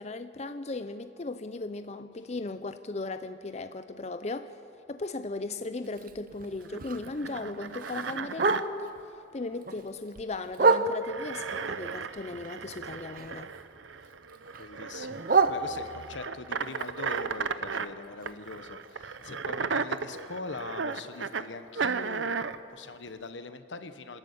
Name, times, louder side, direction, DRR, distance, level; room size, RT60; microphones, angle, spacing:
voice 1, 0.0-4.6 4.9-9.0 9.3-13.5, left 3 dB, 35° left, 10 dB, 0.5 m, -37 dB
Bark, 5.8-9.0 9.4-11.3 11.8-13.6 13.9-16.2 16.7-20.6 20.9-21.0 21.3-21.7 22.1-22.2 22.6-22.7 23.2-23.3, right 4 dB, 50° right, 0.8 m, -31 dB
sound 1, 6.6-8.6 10.9-17.9 18.3-21.5 21.7-22.6, right 5 dB, 90° right, 0.7 m, -35 dB
voice 2, 14.5-24.2, left 3 dB, 80° left, 10 dB, 1.1 m, -42 dB
26.0 x 13.5 x 8.6 m, 2.6 s
head